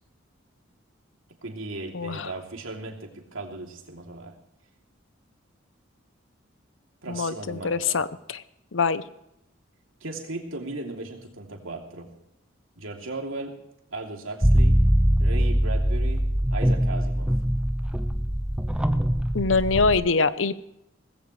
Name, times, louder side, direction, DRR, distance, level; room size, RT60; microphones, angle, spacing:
voice 1, 1.4-4.4 7.0-8.0 10.0-12.1 12.8-13.6 13.9-14.8 15.2-17.3, right 2 dB, 85° right, 1 dB, 3.0 m, -36 dB
voice 2, 1.9-2.3 7.1-8.4 8.7-9.0 19.3-20.6, left 4 dB, 70° left, 15 dB, 0.8 m, -24 dB
sound 1, 14.4-20.0, equal, 5° right, 0.7 m, -22 dB
19.0 x 15.5 x 3.3 m, 0.80 s
head